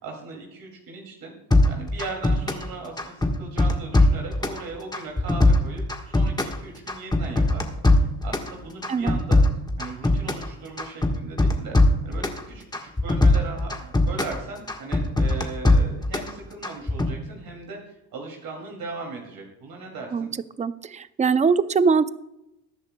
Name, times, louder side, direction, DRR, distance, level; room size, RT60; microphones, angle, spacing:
voice 1, 0.0-1.3 1.6-9.4 9.8-11.8 12.0-20.4, right 3 dB, 65° right, 0 dB, 2.6 m, -38 dB
sound 1, 1.5-2.7 3.0-4.6 4.9-6.6 6.9-8.5 8.8-10.5 10.8-12.4 12.7-14.4 14.7-16.3 16.6-17.1, left 2 dB, 10° left, 1.4 m, -20 dB
voice 2, 8.9-9.2 20.1-20.3 20.6-22.1, right 5 dB, 20° right, 14 dB, 0.4 m, -22 dB
20.5 x 10.5 x 2.2 m, 0.88 s
cardioid pair, 110°, 38 cm